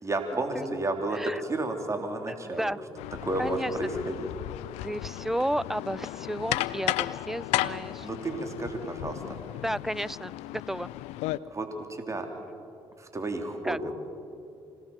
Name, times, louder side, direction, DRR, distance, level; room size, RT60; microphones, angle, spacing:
voice 1, 0.0-2.7 3.2-4.3 8.0-9.2 11.5-12.3 13.0-13.9, right 2 dB, 30° right, 4 dB, 3.3 m, -32 dB
voice 2, 1.1-1.4 2.3-2.8 3.4-3.7 4.8-8.1 9.6-10.9 13.6-13.8, right 1 dB, 5° right, 21 dB, 0.5 m, -32 dB
sound 1, 3.0-11.4, left 16 dB, 85° left, 0.6 m, -34 dB
26.0 x 18.0 x 7.2 m, 2.5 s
supercardioid pair, 60°, 11 cm